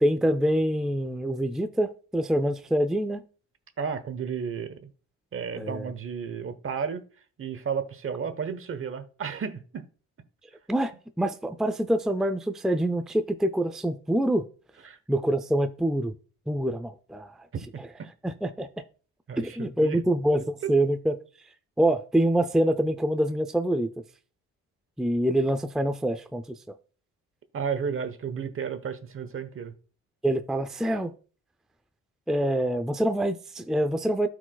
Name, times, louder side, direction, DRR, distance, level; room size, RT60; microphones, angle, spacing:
voice 1, 0.0-3.2 5.6-5.9 10.7-10.9 11.2-14.4 15.1-16.1 16.5-17.4 17.8-17.9 18.2-18.7 19.4-21.2 21.8-23.9 25.0-26.4 30.2-31.1 32.3-34.3, right 1 dB, ahead, 0.5 m, -25 dB
voice 2, 3.8-4.9 5.3-7.0 7.4-9.8 14.8-15.0 17.7-18.1 19.3-20.0 20.6-20.7 27.5-29.7, right 6 dB, 45° right, 1.0 m, -33 dB
12.5 x 4.8 x 2.3 m
cardioid pair, 90°, 30 cm